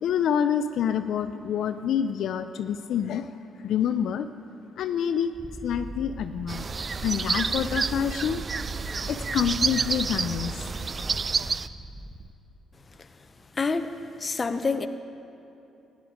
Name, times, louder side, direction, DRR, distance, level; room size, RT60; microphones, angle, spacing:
voice 1, 0.0-3.3 3.6-4.3 4.8-5.3 5.6-6.7 7.0-8.4 9.1-10.7, left 8 dB, 75° left, 10 dB, 0.4 m, -27 dB
Purr, 5.3-12.3, equal, 5° right, 0.7 m, -41 dB
sound 1, 6.5-11.7, right 5 dB, 35° right, 0.3 m, -29 dB
voice 2, 13.6-13.9 14.2-14.9, left 4 dB, 30° left, 10 dB, 0.7 m, -26 dB
14.5 x 10.0 x 5.1 m, 2.9 s
cardioid pair, 90°, 0 cm